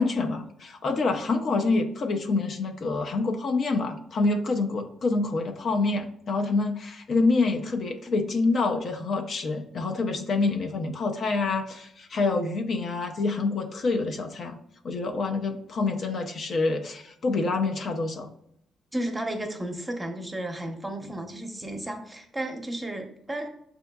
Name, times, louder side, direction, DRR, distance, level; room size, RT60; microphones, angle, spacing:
voice 1, 0.0-14.6 14.8-18.3, left 3 dB, 55° left, 4 dB, 0.5 m, -26 dB
voice 2, 18.9-23.5, right 1 dB, 10° right, 3 dB, 0.7 m, -33 dB
6.6 x 2.6 x 2.3 m, 0.73 s
cardioid pair, 90°, 0 cm